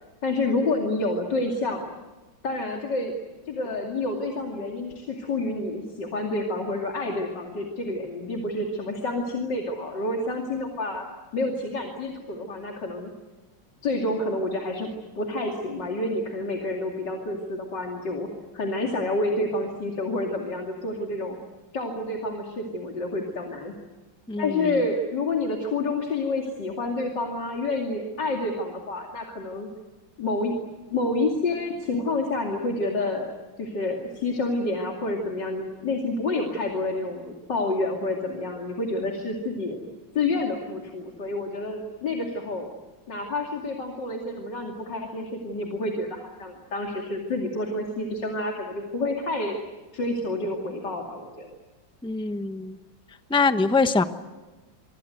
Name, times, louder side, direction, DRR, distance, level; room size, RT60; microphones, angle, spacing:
voice 1, 0.2-1.8 2.4-3.1 3.5-11.0 11.3-13.1 13.8-18.3 18.5-21.4 21.7-23.7 24.4-29.7 30.2-30.5 30.9-33.3 33.6-39.8 40.1-42.7 43.1-49.6 49.9-51.5, left 2 dB, 65° left, 1 dB, 3.3 m, -28 dB
voice 2, 24.3-24.7 52.0-52.8 53.3-54.0, left 4 dB, 5° left, 9 dB, 0.6 m, -23 dB
25.5 x 25.0 x 8.0 m, 1.2 s
omnidirectional pair, 2.1 m